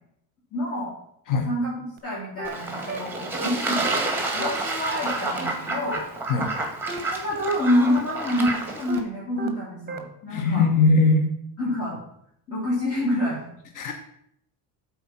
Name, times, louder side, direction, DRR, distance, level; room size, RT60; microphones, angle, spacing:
voice 1, 0.5-0.9 1.4-3.9 4.3-6.0 7.1-10.7 11.6-12.0 12.5-13.4, left 1 dB, 35° left, -7 dB, 2.9 m, -27 dB
sound 1, 2.0-2.1 2.4-2.5 2.9-3.0 3.4-3.5 3.9-4.0 4.4-4.5 4.9-5.0 5.4-5.5 5.9-6.0 6.4-6.5 6.9-7.0 7.4-7.5 7.9-8.0 8.4-8.5 8.9-9.0 9.4-9.5 9.9-10.0, right 3 dB, 25° right, 1.0 m, -33 dB
Fowl / Bird / Water, 2.4-9.0, right 2 dB, 5° right, 1.7 m, -29 dB
voice 2, 10.3-11.3 13.8-13.9, left 3 dB, 50° left, 5 dB, 1.0 m, -20 dB
7.9 x 4.3 x 5.8 m, 0.72 s
cardioid pair, 110°, 40 cm